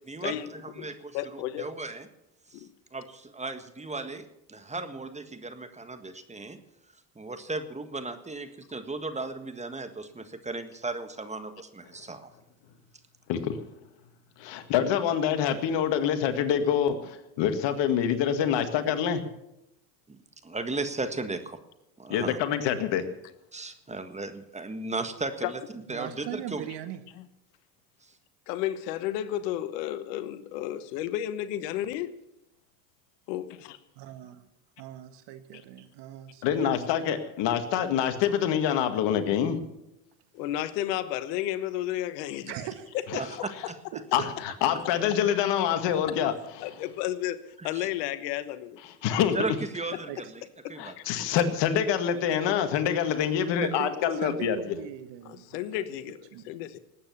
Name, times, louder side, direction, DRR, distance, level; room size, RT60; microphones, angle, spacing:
voice 1, 0.1-2.1 2.5-2.6 2.9-6.6 7.1-12.3 20.1-20.2 20.4-21.6 22.0-22.4 23.5-26.6 43.2-43.3 43.7-43.8 47.6-47.9 49.3-50.4 50.7-50.9, right 3 dB, 15° right, 9 dB, 1.6 m, -36 dB
voice 2, 1.1-1.7 2.5-2.7 25.4-25.5 28.5-32.1 33.3-33.4 40.3-42.5 43.6-43.7 46.6-47.4 47.6-48.8 50.6-51.3 55.3-56.8, left 12 dB, 75° left, 14 dB, 1.2 m, -32 dB
voice 3, 13.3-13.6 14.4-17.0 17.4-19.2 22.1-23.1 36.4-39.6 44.1-46.3 46.6-46.7 49.0-49.4 50.8-54.6, left 9 dB, 55° left, 8 dB, 2.1 m, -26 dB
voice 4, 25.9-27.0 34.0-34.3 34.8-36.8 37.1-37.2 42.5-43.2 43.9-44.3 50.1-50.2 53.6-55.8 56.3-56.5, right 11 dB, 55° right, 11 dB, 1.7 m, -39 dB
19.0 x 8.9 x 7.1 m, 0.86 s
supercardioid pair, 90°, 49 cm